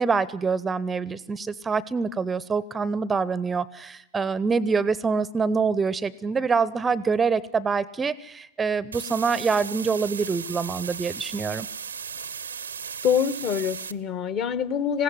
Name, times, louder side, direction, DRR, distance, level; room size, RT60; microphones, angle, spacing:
voice 1, 0.0-11.7, right 5 dB, 15° right, 20 dB, 0.7 m, -25 dB
sound 1, 8.9-13.9, right 6 dB, 75° right, 0.7 m, -36 dB
voice 2, 13.0-15.0, left 8 dB, 40° left, 16 dB, 1.3 m, -25 dB
20.5 x 16.5 x 9.6 m, 0.86 s
figure-of-eight pair, 90°, 0 cm